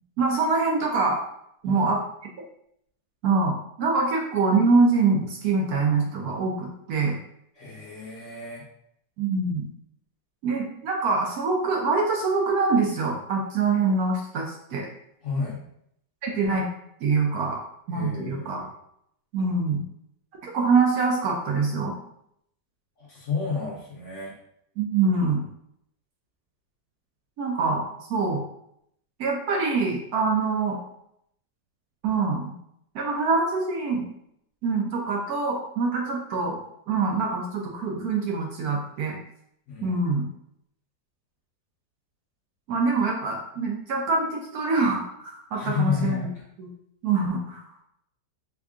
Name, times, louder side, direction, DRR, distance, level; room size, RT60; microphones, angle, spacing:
voice 1, 0.2-1.2 1.6-2.0 3.2-7.1 9.2-9.7 10.4-14.9 16.2-16.7 17.0-17.6 17.9-18.6 19.3-19.8 20.4-21.9 24.8-25.4 27.4-27.8 28.1-28.4 29.2-30.8 32.0-32.5 32.9-34.0 34.6-36.6 36.9-39.1 39.8-40.2 42.7-46.3 46.6-46.7 47.0-47.6, right 4 dB, 70° right, -1 dB, 1.0 m, -24 dB
voice 2, 1.6-1.9 7.5-8.7 15.2-15.6 17.9-18.7 23.0-24.4 39.7-40.0 45.5-46.4, left 5 dB, 55° left, -5 dB, 1.0 m, -31 dB
3.5 x 2.3 x 3.6 m, 0.73 s
omnidirectional pair, 1.9 m